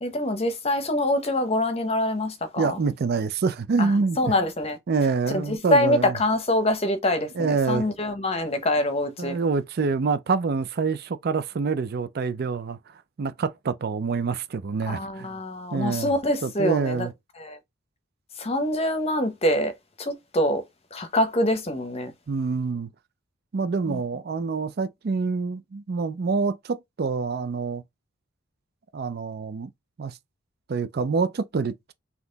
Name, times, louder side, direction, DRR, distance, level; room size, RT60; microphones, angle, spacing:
voice 1, 0.0-2.8 3.8-4.8 5.3-9.4 14.9-17.1 17.4-17.6 18.4-20.6 20.9-22.1 23.9-24.0, left 1 dB, 30° left, 0.9 m, -25 dB
voice 2, 2.6-4.2 4.9-6.1 7.4-7.8 9.2-12.8 13.2-15.3 15.7-16.1 16.4-17.1 22.3-22.9 23.5-27.8 28.9-29.7 30.0-30.2 30.7-31.9, right 4 dB, 50° right, 0.4 m, -26 dB
4.0 x 2.9 x 3.9 m
head